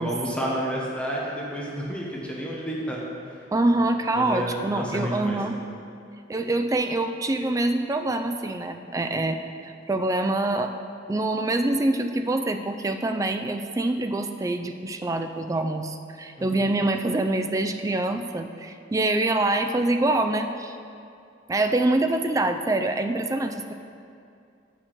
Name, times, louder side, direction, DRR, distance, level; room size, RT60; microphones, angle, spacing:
voice 1, 0.0-3.0 4.2-5.4 16.4-16.6, equal, 5° left, -5 dB, 1.0 m, -30 dB
voice 2, 3.5-5.6 6.3-9.4 9.9-10.7 11.1-20.8 21.5-23.7, right 2 dB, 20° right, 7 dB, 0.4 m, -25 dB
6.1 x 6.1 x 6.5 m, 2.5 s
head